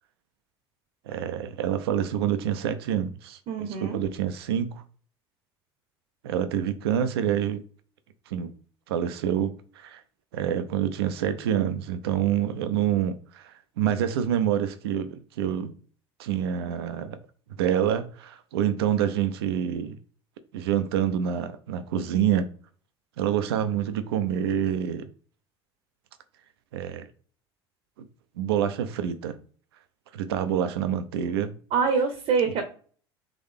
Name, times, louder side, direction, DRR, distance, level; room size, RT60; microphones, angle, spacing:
voice 1, 1.1-4.8 6.2-7.6 8.3-8.5 8.9-10.0 10.3-15.7 16.2-17.2 17.6-20.0 20.5-22.5 23.2-25.1 26.7-27.1 28.0-28.1 28.4-29.4 30.1-31.5, right 9 dB, 65° right, 0.6 m, -27 dB
voice 2, 3.5-4.0 31.7-32.6, right 5 dB, 45° right, 0.9 m, -25 dB
3.7 x 3.4 x 3.4 m
figure-of-eight pair, 65°, 14 cm